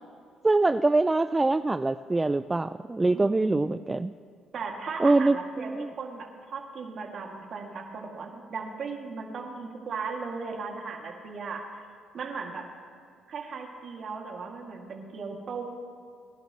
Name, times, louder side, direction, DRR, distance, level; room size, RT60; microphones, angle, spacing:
voice 1, 0.4-4.1 5.0-5.9, right 2 dB, 20° right, 12 dB, 0.3 m, -24 dB
voice 2, 3.1-3.9 4.5-11.6 12.1-12.6 13.3-15.6, right 4 dB, 55° right, 1 dB, 2.4 m, -37 dB
24.0 x 11.5 x 3.1 m, 2.3 s
supercardioid pair, 70°, 0 cm